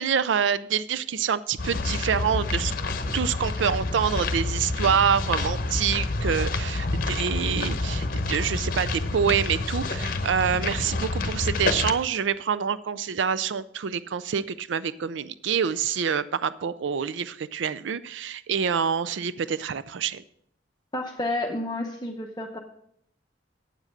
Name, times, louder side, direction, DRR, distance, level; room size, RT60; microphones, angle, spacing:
voice 1, 0.0-2.7 3.1-20.2, right 7 dB, 85° right, 15 dB, 0.4 m, -26 dB
sound 1, 1.6-11.9, left 2 dB, 50° left, 0.9 m, -28 dB
voice 2, 20.9-22.6, left 2 dB, 20° left, 1 dB, 0.8 m, -30 dB
9.0 x 7.3 x 6.5 m, 0.70 s
head